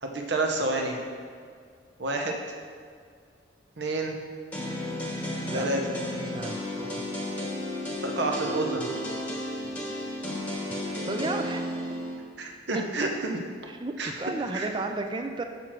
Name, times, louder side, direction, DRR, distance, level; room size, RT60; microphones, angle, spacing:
voice 1, 0.0-1.0 2.0-2.4 3.8-4.2 5.5-5.8 8.0-8.9 12.4-13.4 14.0-14.1 14.5-14.7, right 2 dB, 65° right, 2 dB, 0.9 m, -29 dB
sound 1, 4.5-12.1, left 1 dB, 10° left, 1.1 m, -33 dB
voice 2, 6.2-7.0 10.1-10.3 10.8-11.7 12.7-13.1 13.8-15.4, right 2 dB, 25° right, 5 dB, 0.5 m, -33 dB
6.9 x 6.0 x 4.5 m, 2.1 s
head